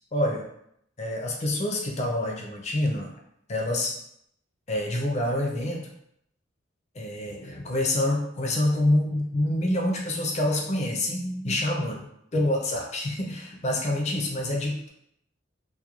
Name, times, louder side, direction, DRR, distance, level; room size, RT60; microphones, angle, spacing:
voice 1, 0.1-0.5 1.0-3.1 3.5-3.9 4.7-5.9 6.9-12.1 12.3-14.9, left 1 dB, 35° left, 0 dB, 0.4 m, -27 dB
2.3 x 2.1 x 2.9 m, 0.74 s
head